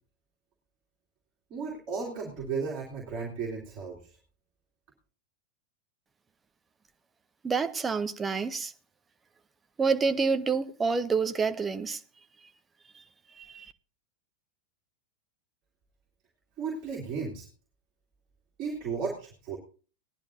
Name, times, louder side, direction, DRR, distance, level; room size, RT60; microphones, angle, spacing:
voice 1, 1.5-4.2 16.6-17.5 18.6-19.6, right 5 dB, 35° right, 2.8 m, -34 dB
voice 2, 7.4-8.7 9.8-12.0 13.4-13.7, right 5 dB, 15° right, 0.7 m, -28 dB
18.5 x 11.0 x 2.7 m
figure-of-eight pair, 90°, 0 cm